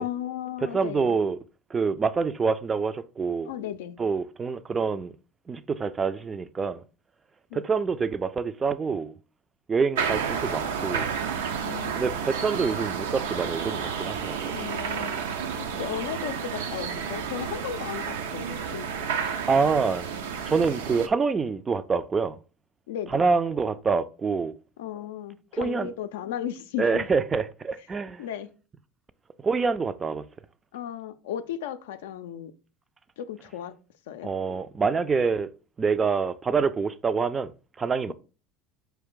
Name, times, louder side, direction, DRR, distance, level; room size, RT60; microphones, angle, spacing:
voice 1, 0.0-1.2 3.4-4.0 7.5-7.6 11.6-12.0 14.5-15.2 15.6-19.1 22.9-23.2 24.8-27.1 28.2-28.5 30.7-32.5 33.2-33.8 34.1-34.3, left 10 dB, 80° left, 0.4 m, -35 dB
voice 2, 0.7-1.4 1.7-3.5 4.0-5.2 5.5-6.8 7.5-9.1 9.7-11.1 12.0-14.5 19.5-20.1 20.4-22.4 23.1-24.5 25.6-25.9 26.8-28.2 29.4-30.3 34.2-35.5 35.8-37.5 37.8-38.1, right 5 dB, 25° right, 0.3 m, -26 dB
sound 1, 9.9-21.1, right 6 dB, 85° right, 0.5 m, -31 dB
4.6 x 2.5 x 3.6 m
hypercardioid pair, 85°, 0 cm